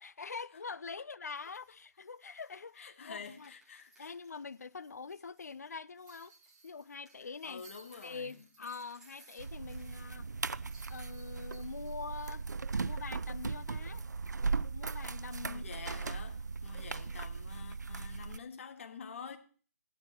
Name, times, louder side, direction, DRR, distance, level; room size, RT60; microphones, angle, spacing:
voice 1, 0.0-3.5 4.0-6.3 6.6-7.6 8.0-10.3 10.9-12.5 12.8-14.0 14.5-15.8, left 5 dB, 65° left, 0.7 m, -44 dB
sound 1, 1.3-10.1 10.5-10.6, right 1 dB, 5° right, 3.4 m, -65 dB
voice 2, 2.8-4.1 7.2-8.4 15.4-19.4, left 6 dB, 50° left, 1.9 m, -48 dB
sound 2, 6.1-9.3 9.6-9.7 10.7-13.4 13.8-13.9 16.0-16.2, right 4 dB, 35° right, 4.5 m, -61 dB
sound 3, 9.4-18.4, right 4 dB, 80° right, 0.5 m, -38 dB
15.5 x 12.5 x 3.0 m
figure-of-eight pair, 150°, 9 cm